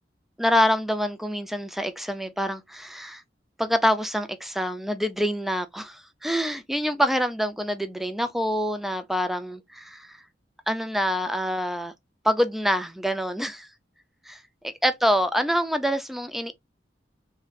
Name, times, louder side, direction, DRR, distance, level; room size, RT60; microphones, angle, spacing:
voice 1, 0.4-3.2 3.6-10.2 10.7-11.9 12.2-13.7 14.3-16.5, equal, ahead, 0.4 m, -26 dB
3.2 x 2.6 x 2.3 m
head